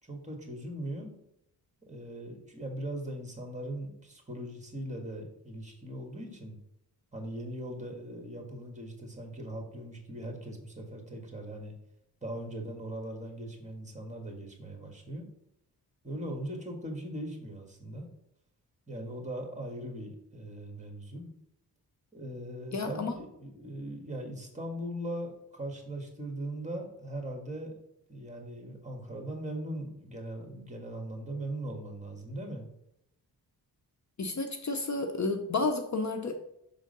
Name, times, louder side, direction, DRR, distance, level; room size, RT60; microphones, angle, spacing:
voice 1, 0.0-1.1 1.9-6.6 7.1-11.7 12.2-15.3 16.0-18.1 18.9-21.3 22.1-27.7 28.1-32.7, right 1 dB, 20° right, 3 dB, 1.8 m, -40 dB
voice 2, 22.7-23.1 34.2-36.3, left 3 dB, 45° left, 6 dB, 0.7 m, -31 dB
6.4 x 3.7 x 5.3 m, 0.80 s
cardioid pair, 90°, 40 cm